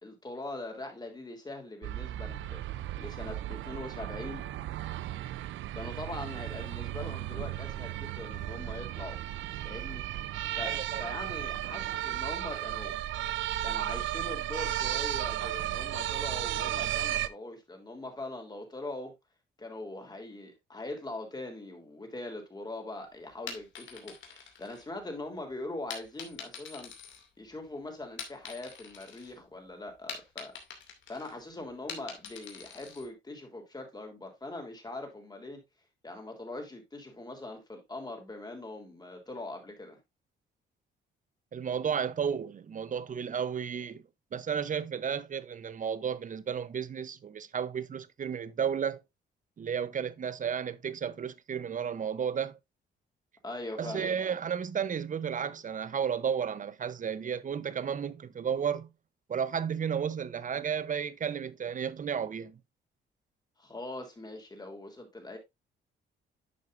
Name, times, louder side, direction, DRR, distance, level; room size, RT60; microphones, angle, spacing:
voice 1, 0.0-4.4 5.7-9.2 9.6-10.1 10.6-13.0 13.6-19.1 19.6-26.9 27.4-30.6 31.1-35.6 36.0-40.0 53.4-54.1 63.6-65.4, left 2 dB, 20° left, 3.5 m, -42 dB
sound 1, 1.8-17.3, right 13 dB, 75° right, 0.6 m, -34 dB
voice 2, 10.6-11.1 41.5-44.0 44.3-49.0 49.6-52.6 53.8-58.9 59.3-62.6, right 7 dB, 40° right, 0.8 m, -33 dB
sound 2, 23.3-25.3 25.9-27.7 28.0-29.3 29.7-33.1, left 6 dB, 70° left, 2.5 m, -45 dB
10.5 x 6.5 x 2.6 m
cardioid pair, 90°, 20 cm